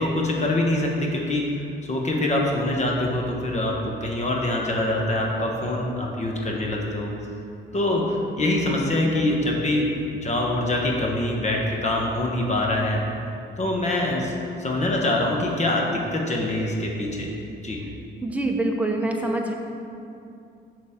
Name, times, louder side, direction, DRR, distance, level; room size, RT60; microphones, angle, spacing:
voice 1, 0.0-1.4 1.8-7.1 7.7-9.9 10.2-13.0 13.6-14.3 14.6-17.3 17.6-17.8, left 1 dB, 35° left, -1 dB, 1.0 m, -24 dB
voice 2, 18.2-19.5, right 2 dB, 5° right, 1 dB, 0.7 m, -25 dB
6.5 x 6.1 x 3.6 m, 2.6 s
cardioid pair, 90°, 20 cm